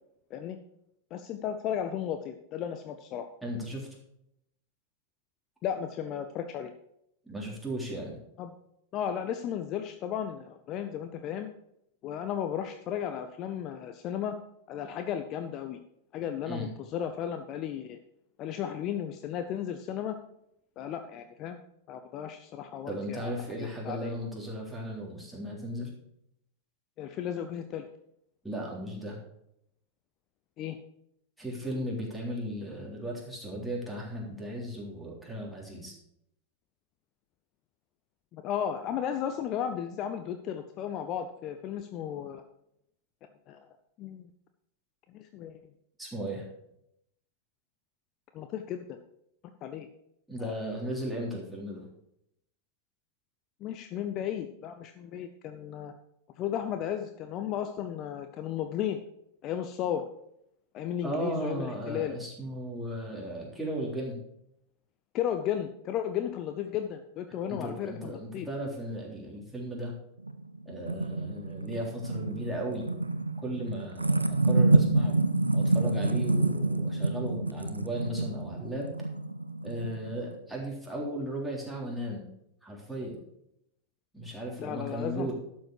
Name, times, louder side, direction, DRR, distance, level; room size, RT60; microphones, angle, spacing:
voice 1, 1.1-3.3 5.6-6.7 8.4-8.5 8.9-11.5 12.0-14.4 14.7-15.8 16.1-18.0 18.4-20.1 20.8-21.6 21.9-23.3 23.6-24.1 27.0-27.9 30.6-30.8 38.3-42.4 43.5-43.6 44.0-44.3 45.1-45.6 48.3-48.8 49.6-49.9 53.6-55.9 56.4-59.0 59.4-60.1 60.7-62.1 65.1-68.5 84.6-85.3, left 9 dB, 35° left, 7 dB, 0.7 m, -34 dB
voice 2, 3.4-3.9 7.2-8.2 16.5-16.7 22.8-25.9 28.4-29.2 31.4-36.0 46.0-46.5 50.3-51.8 61.0-64.2 67.5-69.9 70.6-72.9 73.4-75.2 75.5-78.9 79.6-82.2 82.6-83.2 84.1-85.3, right 1 dB, ahead, -4 dB, 3.5 m, -36 dB
sound 1, 70.3-80.3, right 2 dB, 85° right, 0.6 m, -28 dB
12.0 x 7.4 x 4.7 m, 0.78 s
figure-of-eight pair, 90°, 0 cm